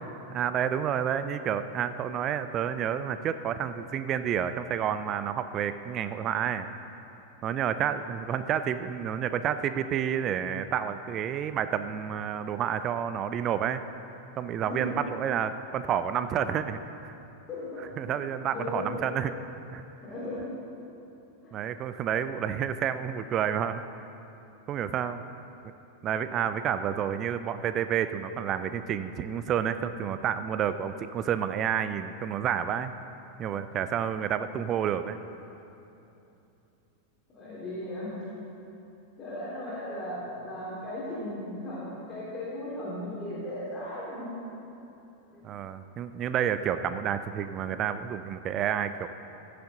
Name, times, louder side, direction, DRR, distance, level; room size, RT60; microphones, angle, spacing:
voice 1, 0.3-6.7 7.4-13.8 14.4-17.1 18.0-19.3 19.7-19.8 21.5-24.1 24.7-25.2 26.0-32.9 33.4-35.2 45.4-49.1, right 9 dB, 30° right, 12 dB, 0.3 m, -30 dB
voice 2, 14.7-15.0 17.5-18.1 18.5-18.9 20.0-20.6 21.4-21.6 37.3-38.1 39.2-44.3 45.3-45.4, left 1 dB, 20° left, -8 dB, 2.6 m, -36 dB
15.0 x 6.6 x 3.9 m, 2.9 s
figure-of-eight pair, 90°, 0 cm